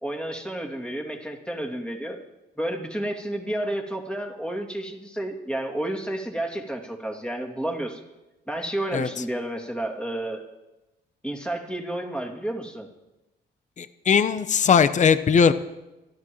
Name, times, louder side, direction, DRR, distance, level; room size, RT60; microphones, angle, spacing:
voice 1, 0.0-2.2 2.6-8.0 8.5-10.4 11.2-12.9, right 1 dB, 5° left, 1 dB, 2.6 m, -31 dB
voice 2, 13.8-15.5, left 6 dB, 40° left, 12 dB, 0.7 m, -19 dB
27.5 x 12.5 x 3.1 m, 1.0 s
cardioid pair, 90°, 20 cm